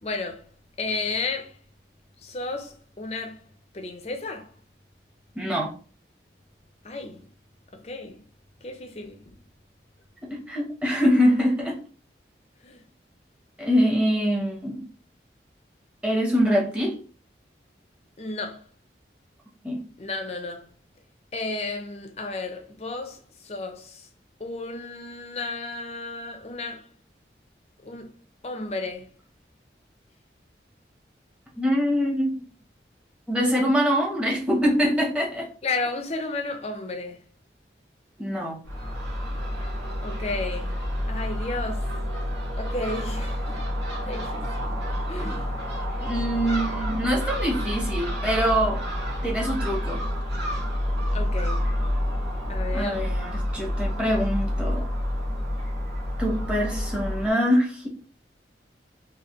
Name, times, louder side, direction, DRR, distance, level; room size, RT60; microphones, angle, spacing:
voice 1, 0.0-0.5 0.8-1.6 2.2-3.4 3.7-4.5 6.8-7.3 7.7-8.2 8.6-9.3 12.6-12.8 18.2-18.7 20.0-20.7 21.3-24.1 24.4-26.9 27.8-28.1 28.4-29.1 35.6-37.2 40.0-41.9 42.6-43.6 44.0-44.7 45.1-45.5 51.1-51.7 52.5-53.1, left 3 dB, 35° left, 0.6 m, -33 dB
voice 2, 5.4-5.7 10.3-11.8 13.6-14.8 16.0-17.0 19.6-19.8 31.6-32.4 33.3-35.5 38.2-38.6 45.2-45.3 46.0-48.8 49.2-50.0 52.7-54.8 56.2-57.9, equal, 5° right, 0.9 m, -24 dB
Crow / Gull seagull, 38.6-57.3, equal, 75° right, 1.8 m, -28 dB
4.2 x 2.8 x 3.0 m
head